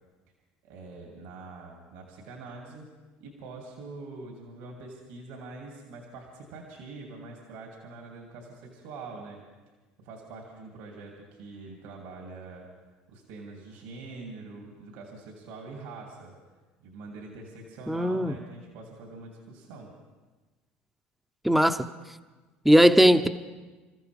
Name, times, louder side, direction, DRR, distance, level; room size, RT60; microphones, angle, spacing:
voice 1, 0.6-2.9 3.2-9.4 10.0-12.7 13.1-16.3 16.8-19.9, right 3 dB, 80° right, 0 dB, 2.9 m, -44 dB
voice 2, 17.9-18.3 21.4-21.8 22.6-23.3, equal, 5° right, 9 dB, 0.8 m, -19 dB
27.5 x 14.5 x 3.6 m, 1.3 s
supercardioid pair, 80°, 5 cm